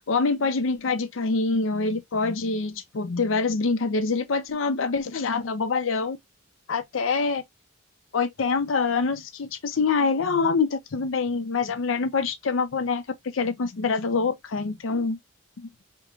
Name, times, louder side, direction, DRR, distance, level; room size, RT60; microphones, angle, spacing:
voice 1, 0.1-6.2 6.7-7.4 8.1-13.0 13.3-15.2 15.6-15.7, left 4 dB, 70° left, 0.5 m, -25 dB
4.5 x 2.1 x 2.4 m
head